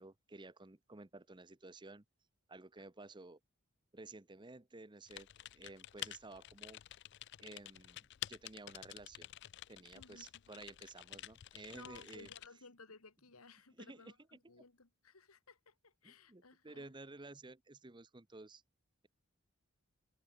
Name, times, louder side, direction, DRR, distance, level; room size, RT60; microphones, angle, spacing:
voice 1, 0.0-2.0 2.5-3.4 3.9-5.3 5.5-6.8 7.4-9.3 9.7-12.3 13.8-14.6 16.0-18.6, right 2 dB, 20° right, 0.9 m, -53 dB
Typing, 5.1-12.5, left 13 dB, 50° left, 0.4 m, -50 dB
voice 2, 9.9-10.6 11.7-16.9, left 4 dB, 85° left, 2.5 m, -59 dB
head